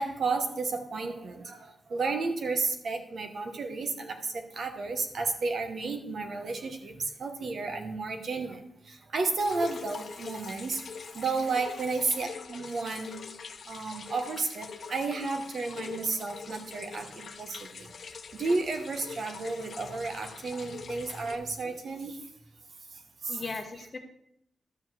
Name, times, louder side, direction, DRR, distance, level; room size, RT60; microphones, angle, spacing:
voice 1, 0.0-6.9 7.2-8.6 8.9-10.8 11.1-13.1 13.7-17.9 18.4-22.2 23.2-23.4, right 3 dB, 55° right, 6 dB, 1.3 m, -32 dB
sound 1, 9.4-21.4, left 5 dB, 60° left, 0.9 m, -43 dB
voice 2, 23.3-24.0, left 4 dB, 30° left, 5 dB, 1.3 m, -39 dB
12.0 x 5.0 x 7.9 m, 0.75 s
wide cardioid pair, 170°, 0 cm